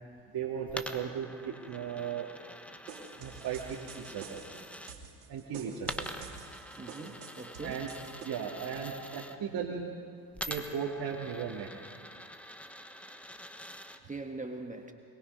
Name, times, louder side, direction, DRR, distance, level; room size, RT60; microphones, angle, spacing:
voice 1, 0.3-2.3 3.2-4.4 5.3-6.1 7.6-7.9 8.2-9.9 10.5-11.7, right 7 dB, 45° right, -3 dB, 2.4 m, -36 dB
Coin (dropping), 0.7-4.9 5.8-9.4 10.3-14.0, equal, 5° left, 1.2 m, -45 dB
sound 1, 2.9-8.3, right 6 dB, 85° right, 3.0 m, -48 dB
voice 2, 5.7-6.0 6.8-7.8 14.1-14.9, right 3 dB, 15° right, 4 dB, 1.6 m, -42 dB
23.0 x 22.0 x 5.4 m, 2.1 s
hypercardioid pair, 75°, 49 cm